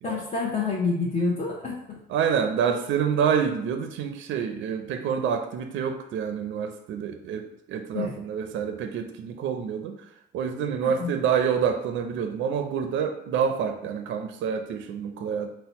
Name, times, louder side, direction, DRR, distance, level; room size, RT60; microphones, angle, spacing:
voice 1, 0.0-2.0 7.9-8.2 10.8-11.1, left 4 dB, 40° left, -3 dB, 0.8 m, -28 dB
voice 2, 2.1-10.1 10.3-15.5, right 7 dB, 75° right, 6 dB, 0.4 m, -27 dB
4.1 x 2.1 x 4.0 m, 0.82 s
cardioid pair, 90°, 20 cm